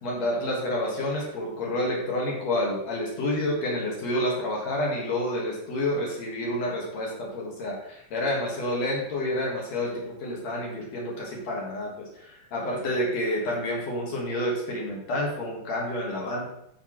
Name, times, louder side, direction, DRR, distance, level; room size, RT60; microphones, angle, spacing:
voice 1, 0.0-11.9 12.3-16.5, left 1 dB, 60° left, -3 dB, 1.9 m, -29 dB
12.5 x 4.7 x 3.0 m, 0.77 s
omnidirectional pair, 5.2 m